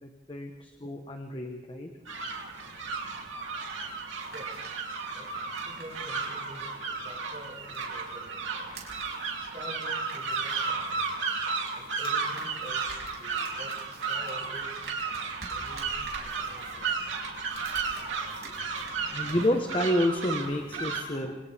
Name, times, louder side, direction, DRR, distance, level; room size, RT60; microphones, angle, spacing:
voice 1, 0.0-1.9 19.0-21.4, left 1 dB, 25° left, 3 dB, 1.2 m, -29 dB
sound 1, 2.1-21.0, right 4 dB, 80° right, 3.2 m, -34 dB
sound 2, 4.2-8.1 8.4-19.0 19.3-19.6, right 4 dB, 60° right, 5.9 m, -47 dB
voice 2, 4.3-5.3 5.6-8.7 9.4-11.2 11.7-14.8 15.5-17.1 18.4-19.4, right 1 dB, 35° right, -4 dB, 7.6 m, -48 dB
28.0 x 26.0 x 3.6 m, 1.1 s
head